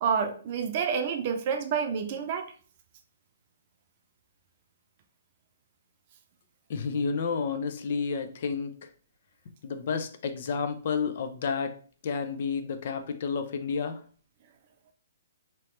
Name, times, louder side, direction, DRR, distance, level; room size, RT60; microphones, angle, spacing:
voice 1, 0.0-2.5, right 6 dB, 45° right, 6 dB, 0.6 m, -28 dB
voice 2, 6.7-8.9 9.6-11.8 12.0-14.0, left 5 dB, 55° left, 8 dB, 0.5 m, -30 dB
3.0 x 2.9 x 3.1 m, 0.43 s
hypercardioid pair, 135°, 0 cm